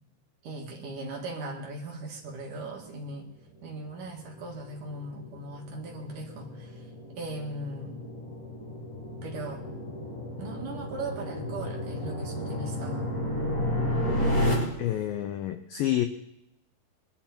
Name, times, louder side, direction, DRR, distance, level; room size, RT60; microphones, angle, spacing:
voice 1, 0.4-3.3 3.6-6.9 7.2-8.1 9.2-9.6 10.4-13.1, right 2 dB, 55° right, 0 dB, 3.2 m, -38 dB
sound 1, 3.4-14.5, left 1 dB, 20° left, 5.0 m, -32 dB
voice 2, 14.8-16.1, left 12 dB, 90° left, 9 dB, 2.0 m, -28 dB
22.5 x 12.0 x 4.4 m, 0.86 s
omnidirectional pair, 4.9 m